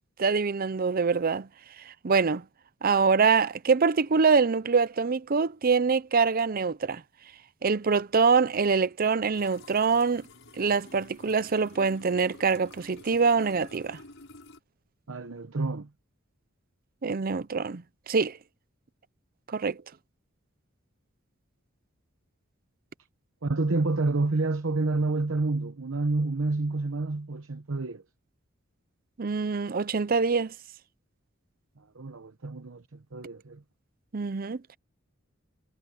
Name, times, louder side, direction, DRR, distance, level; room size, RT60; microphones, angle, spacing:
voice 1, 0.2-1.5 1.9-2.4 2.8-7.0 7.6-10.2 10.6-14.0 17.0-18.4 19.5-19.8 29.2-30.5 34.1-34.8, right 5 dB, 45° right, 0.6 m, -25 dB
sound 1, 9.3-14.6, left 2 dB, 65° left, 7.3 m, -50 dB
voice 2, 15.1-15.9 23.4-28.0 31.9-33.6, right 3 dB, 70° right, 0.9 m, -29 dB
head